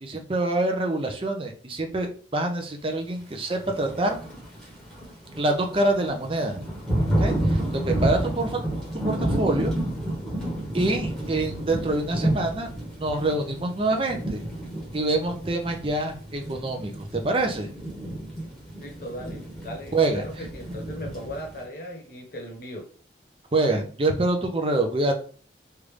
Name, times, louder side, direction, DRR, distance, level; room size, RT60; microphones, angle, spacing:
voice 1, 0.0-4.2 5.4-6.6 7.2-8.6 9.0-9.7 10.7-12.7 13.0-14.4 14.9-17.7 19.9-20.2 23.5-25.1, right 2 dB, 30° right, 4 dB, 0.6 m, -26 dB
Thunder / Rain, 3.5-21.6, right 1 dB, ahead, 1.0 m, -30 dB
voice 2, 18.8-22.9, equal, 50° left, 0 dB, 1.1 m, -38 dB
3.4 x 2.5 x 3.2 m, 0.41 s
head